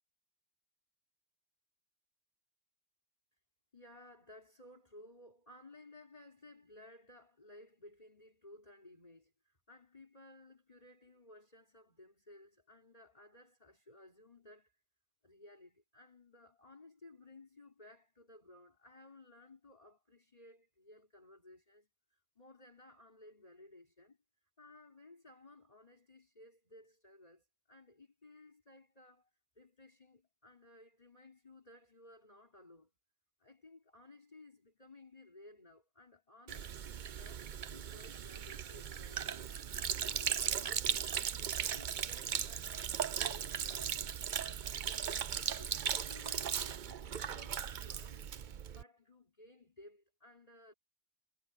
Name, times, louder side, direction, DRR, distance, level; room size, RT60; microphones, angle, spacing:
voice 1, 3.7-14.8 15.2-24.2 24.6-29.3 29.6-32.9 33.4-36.8 37.1-42.9 43.2-44.2 44.6-48.2 48.6-50.7, left 2 dB, 30° left, 3.8 m, -58 dB
Sink (filling or washing), 36.5-48.8, right 8 dB, 50° right, 0.7 m, -38 dB
omnidirectional pair, 1.2 m